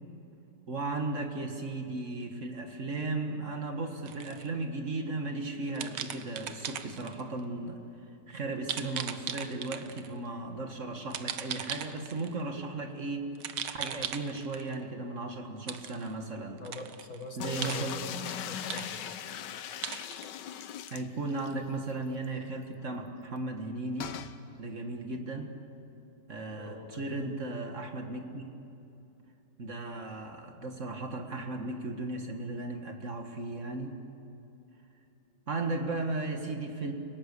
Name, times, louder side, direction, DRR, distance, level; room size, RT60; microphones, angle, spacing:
voice 1, 0.7-7.8 8.3-13.3 13.7-16.7 17.4-17.9 20.9-24.1 24.6-25.5 26.3-28.5 29.6-33.9 35.5-36.9, right 2 dB, 45° right, 4 dB, 1.8 m, -36 dB
sound 1, 4.1-4.5 5.7-7.2 8.7-10.1 11.1-12.3 13.4-14.8 15.7-16.1 16.6-17.2 17.6-18.4 18.7-19.4 19.8-20.3, right 9 dB, 85° right, 1.5 m, -38 dB
voice 2, 16.6-18.2 18.5-19.2 26.6-27.3, left 3 dB, 50° left, 4 dB, 2.0 m, -43 dB
sound 2, 17.4-21.6 21.9-22.0 22.2-22.3 24.0-24.4, left 9 dB, 90° left, 1.5 m, -39 dB
30.0 x 18.0 x 6.9 m, 2.8 s
omnidirectional pair, 1.8 m